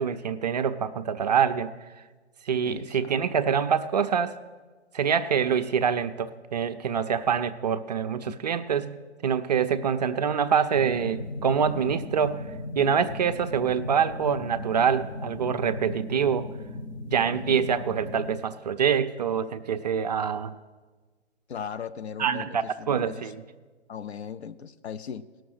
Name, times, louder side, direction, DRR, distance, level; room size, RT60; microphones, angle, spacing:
voice 1, 0.0-1.7 2.5-4.4 4.9-8.9 9.2-12.5 12.8-16.5 17.1-20.6 22.2-23.3, right 7 dB, 40° right, 11 dB, 0.4 m, -25 dB
voice 2, 2.6-3.2 8.2-8.6 17.3-17.7 21.5-23.3 23.9-25.3, left 7 dB, 70° left, 11 dB, 0.7 m, -39 dB
sound 1, 10.7-18.4, left 2 dB, 40° left, 0.8 m, -37 dB
17.0 x 6.3 x 6.4 m, 1.3 s
figure-of-eight pair, 140°, 34 cm